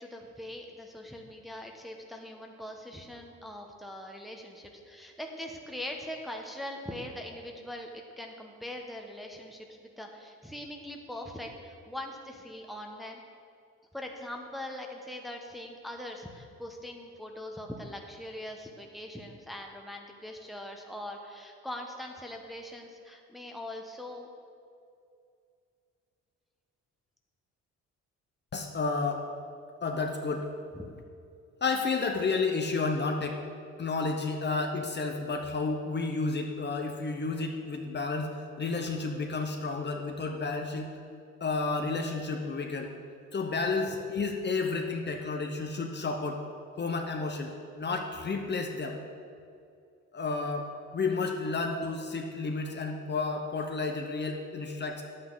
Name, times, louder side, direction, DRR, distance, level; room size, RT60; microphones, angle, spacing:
voice 1, 0.0-13.2 13.9-24.3 30.7-30.9, left 1 dB, ahead, 1 dB, 1.1 m, -42 dB
voice 2, 28.5-29.3 29.8-30.5 31.6-33.4 33.8-40.9 41.4-42.9 43.3-46.4 46.8-49.0 50.1-55.0, left 3 dB, 35° left, 2 dB, 0.9 m, -31 dB
10.5 x 8.6 x 4.0 m, 2.4 s
cardioid pair, 90°, 30 cm